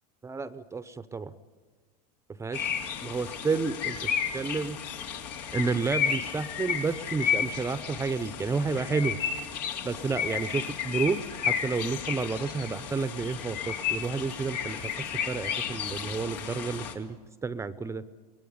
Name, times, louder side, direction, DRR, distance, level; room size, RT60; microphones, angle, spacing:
voice 1, 0.2-1.3 2.4-4.0 4.3-4.8 5.5-9.2 9.8-11.2 11.5-14.8 15.3-17.2 17.4-18.0, right 4 dB, 15° right, 14 dB, 0.8 m, -30 dB
sound 1, 2.5-16.9, left 8 dB, 80° left, 3.0 m, -33 dB
23.0 x 19.0 x 9.6 m, 1.4 s
supercardioid pair, 120°, 21 cm